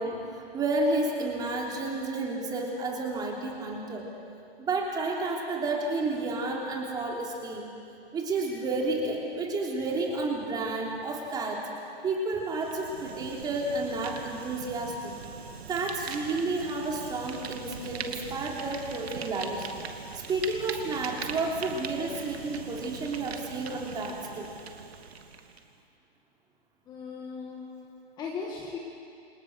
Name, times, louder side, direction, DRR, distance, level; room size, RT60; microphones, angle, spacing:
voice 1, 0.0-4.1 4.6-7.6 8.1-11.7 12.0-15.1 15.7-19.7 20.1-24.5, right 2 dB, 10° right, -1 dB, 3.4 m, -31 dB
Fire, 12.3-25.7, right 6 dB, 80° right, 2.6 m, -41 dB
voice 2, 26.9-28.8, left 5 dB, 15° left, -1 dB, 1.8 m, -38 dB
28.5 x 27.5 x 6.3 m, 2.6 s
hypercardioid pair, 155°, 31 cm